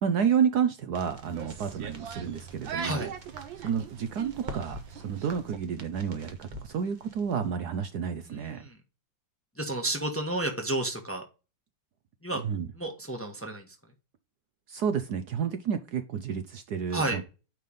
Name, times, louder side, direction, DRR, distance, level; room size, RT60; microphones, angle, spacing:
voice 1, 0.0-3.1 3.6-8.6 12.3-12.7 14.7-17.2, right 7 dB, 65° right, 9 dB, 1.2 m, -30 dB
sound 1, 0.9-7.5, right 1 dB, 30° right, 1.2 m, -47 dB
sound 2, 1.2-5.6, right 6 dB, 80° right, 1.8 m, -41 dB
voice 2, 9.6-11.2 12.2-12.4 12.8-13.6 16.9-17.2, right 1 dB, 10° left, 3 dB, 1.1 m, -31 dB
9.3 x 3.4 x 5.5 m, 0.31 s
omnidirectional pair, 2.1 m